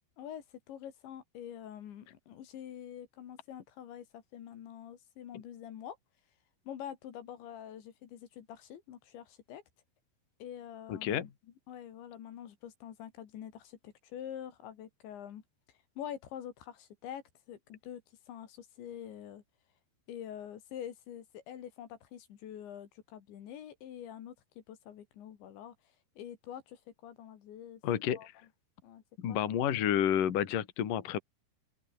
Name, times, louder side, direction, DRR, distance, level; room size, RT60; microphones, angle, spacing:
voice 1, 0.2-6.0 6.7-9.6 10.4-11.3 11.7-15.4 16.0-18.0 18.3-19.4 20.1-25.7 26.2-27.8 28.1-28.3 28.8-29.0 29.3-29.4, left 10 dB, 70° left, 4.5 m, -46 dB
voice 2, 10.9-11.3 27.8-28.2 29.2-31.2, left 10 dB, 50° left, 3.4 m, -30 dB
open air
omnidirectional pair, 5.5 m